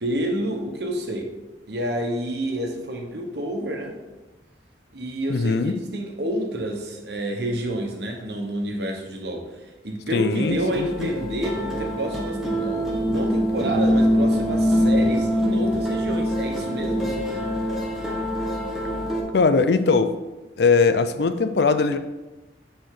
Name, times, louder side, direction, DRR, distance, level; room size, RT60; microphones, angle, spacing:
voice 1, 0.0-1.3 1.7-4.0 4.9-17.5, right 1 dB, 65° right, 2 dB, 1.2 m, -29 dB
voice 2, 5.3-5.8 10.1-11.1 19.3-20.2 20.6-22.0, left 4 dB, 65° left, 10 dB, 0.5 m, -20 dB
sound 1, 10.4-19.2, equal, 5° right, 1.3 m, -24 dB
9.2 x 4.4 x 3.8 m, 1.1 s
head